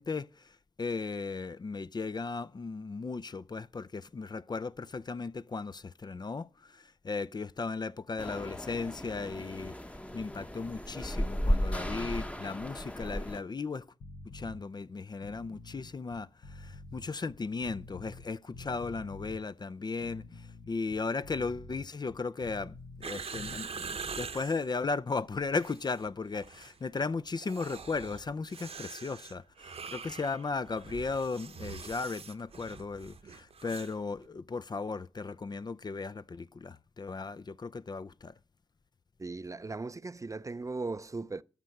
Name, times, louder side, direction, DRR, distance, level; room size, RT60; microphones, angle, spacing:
voice 1, 0.0-9.7 10.1-13.9 14.3-38.3, left 4 dB, 40° left, 0.5 m, -36 dB
sound 1, 8.2-13.4, equal, 10° left, 0.9 m, -34 dB
sound 2, 14.0-14.6 15.1-18.3 18.5-19.4 19.9-23.1 23.3-23.6, left 2 dB, 85° left, 1.4 m, -48 dB
sound 3, 23.0-24.6 25.4-26.1 26.3-26.7 27.3-34.0 34.2-34.3, right 5 dB, 70° right, 1.0 m, -44 dB
voice 2, 39.2-41.4, right 3 dB, 30° right, 0.5 m, -38 dB
13.5 x 5.3 x 8.3 m
cardioid pair, 45°, 11 cm